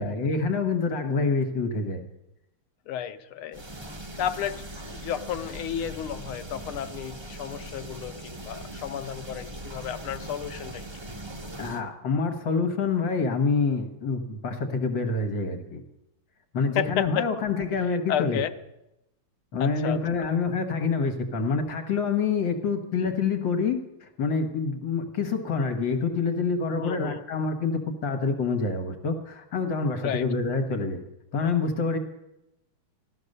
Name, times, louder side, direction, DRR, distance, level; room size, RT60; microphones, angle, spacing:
voice 1, 0.0-2.0 11.6-15.8 16.5-18.4 19.5-31.0 31.3-32.0, left 4 dB, 60° left, 5 dB, 2.2 m, -27 dB
voice 2, 2.9-3.6 4.2-10.8 16.7-17.3 18.1-18.5 19.6-20.3 26.8-27.2 30.0-30.3, left 10 dB, 85° left, 9 dB, 1.7 m, -32 dB
sound 1, 3.5-11.8, right 1 dB, 30° right, 0.4 m, -40 dB
14.5 x 13.0 x 6.7 m, 0.88 s
omnidirectional pair, 2.3 m